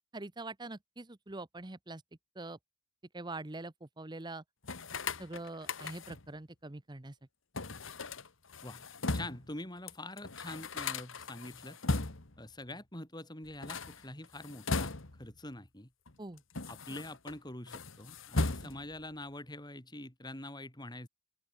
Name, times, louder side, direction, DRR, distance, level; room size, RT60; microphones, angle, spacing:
voice 1, 0.1-2.0 2.4-2.6 3.1-4.4 5.2-7.1 16.2-16.4 18.4-18.7, right 2 dB, 20° right, 0.9 m, -44 dB
sound 1, 4.6-6.3 7.6-9.5 9.9-10.0 10.2-12.4 13.5-15.3 16.1-17.4 17.7-19.0, left 3 dB, 65° left, 1.8 m, -37 dB
voice 2, 9.1-11.8 12.4-15.9 16.7-21.1, left 1 dB, 20° left, 4.8 m, -45 dB
open air
head